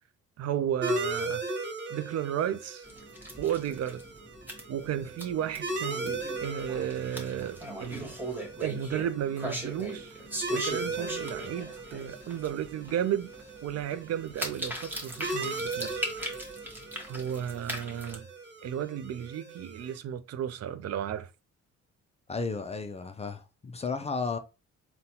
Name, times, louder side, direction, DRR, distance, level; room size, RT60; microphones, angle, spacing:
voice 1, 0.4-1.4 1.9-2.9 3.4-4.0 4.7-8.2 8.6-10.2 10.5-13.3 13.6-16.1 17.1-18.3 18.6-21.3, right 10 dB, 60° right, 0.4 m, -33 dB
sound 1, 0.8-20.0, right 2 dB, 40° right, 0.8 m, -38 dB
sound 2, 2.8-18.2, right 1 dB, 5° right, 0.9 m, -40 dB
voice 2, 22.3-24.4, left 4 dB, 20° left, 0.4 m, -33 dB
3.9 x 2.2 x 2.8 m
cardioid pair, 90°, 30 cm